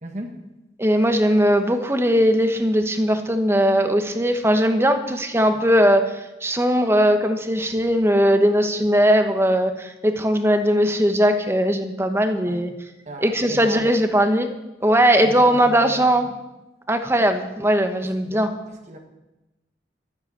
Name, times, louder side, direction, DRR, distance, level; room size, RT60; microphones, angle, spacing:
voice 1, 0.0-0.4 12.5-12.6 13.0-14.0 15.2-16.4 18.2-18.4 18.9-19.0, right 1 dB, 40° right, 3 dB, 1.5 m, -35 dB
voice 2, 0.8-12.7 13.2-14.5 14.8-16.3 16.9-18.5, equal, 15° right, 7 dB, 1.1 m, -19 dB
13.0 x 9.8 x 7.5 m, 1.0 s
head